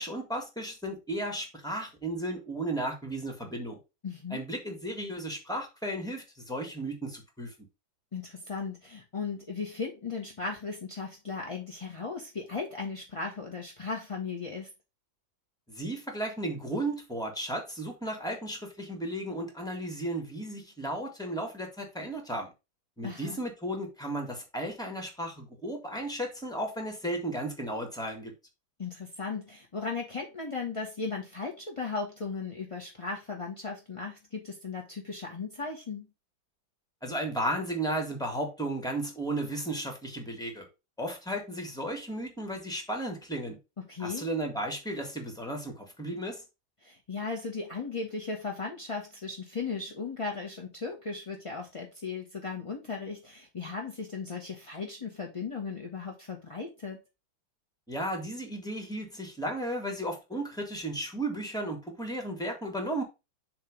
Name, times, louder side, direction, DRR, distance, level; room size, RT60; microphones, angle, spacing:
voice 1, 0.0-3.8 4.3-7.5 15.7-22.5 23.0-28.3 37.0-40.7 41.0-43.6 44.0-46.4 57.9-63.0, right 1 dB, ahead, 1.4 m, -34 dB
voice 2, 4.0-4.4 8.1-14.7 23.0-23.4 28.8-36.1 43.9-44.2 46.8-57.0, left 4 dB, 30° left, 0.6 m, -36 dB
7.2 x 3.0 x 5.1 m
omnidirectional pair, 2.2 m